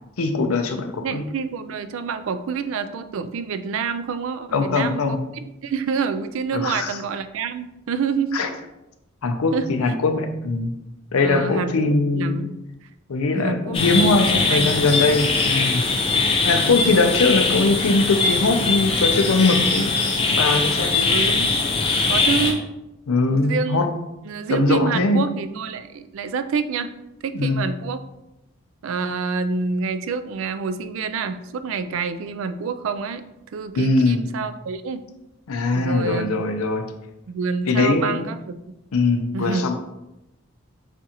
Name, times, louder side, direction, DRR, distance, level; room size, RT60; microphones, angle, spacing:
voice 1, 0.2-1.2 4.5-5.2 6.5-7.0 8.3-8.5 9.2-10.7 11.1-12.4 13.1-15.8 16.4-19.9 20.2-21.1 23.1-23.9 24.5-25.3 27.3-27.6 33.7-34.2 35.5-36.9 37.7-38.2 38.9-39.7, left 3 dB, 85° left, 7 dB, 0.5 m, -21 dB
voice 2, 1.0-8.4 9.5-9.7 11.2-12.6 13.3-14.7 16.8-17.2 21.1-21.5 22.1-22.6 23.3-23.9 24.3-26.9 27.2-28.1 28.8-33.2 33.5-35.0 35.7-36.4 37.3-38.7 39.3-39.7, right 5 dB, 70° right, 11 dB, 0.3 m, -27 dB
sound 1, 13.7-22.5, left 3 dB, 25° left, 0.5 m, -21 dB
6.8 x 2.4 x 2.9 m, 0.91 s
head